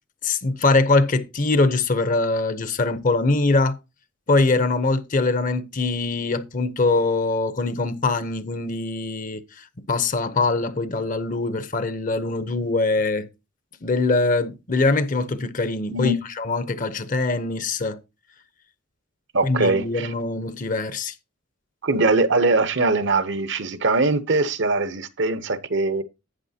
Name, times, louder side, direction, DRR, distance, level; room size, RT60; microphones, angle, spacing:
voice 1, 0.2-3.8 4.3-13.3 13.8-18.0 19.4-21.1, left 3 dB, 40° left, 0.8 m, -23 dB
voice 2, 19.3-20.1 21.8-26.0, right 3 dB, 65° right, 0.9 m, -21 dB
11.5 x 8.5 x 2.8 m
head